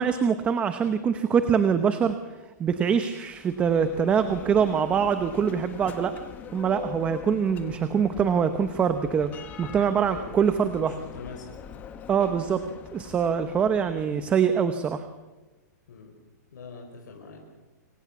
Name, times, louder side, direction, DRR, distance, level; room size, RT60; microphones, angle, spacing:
voice 1, 0.0-2.2 2.6-6.1 6.5-9.3 9.6-11.0 12.1-12.6 12.9-15.1, right 7 dB, 10° right, 10 dB, 0.8 m, -24 dB
Bell, 3.2-15.0, left 8 dB, 15° left, 1.4 m, -43 dB
voice 2, 10.0-11.5 15.9-16.1 16.5-17.5, left 4 dB, 80° left, 1 dB, 5.4 m, -43 dB
26.0 x 24.5 x 7.2 m, 1.2 s
hypercardioid pair, 170°, 10 cm